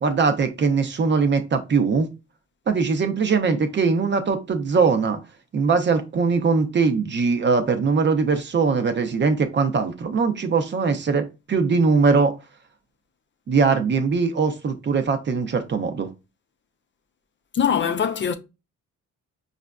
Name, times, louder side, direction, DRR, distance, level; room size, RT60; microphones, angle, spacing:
voice 1, 0.0-2.1 2.7-5.2 5.5-12.3 13.5-16.1, right 5 dB, 40° right, 0.6 m, -21 dB
voice 2, 17.5-18.4, left 7 dB, 40° left, 0.4 m, -22 dB
4.9 x 2.4 x 2.2 m
cardioid pair, 90°, 30 cm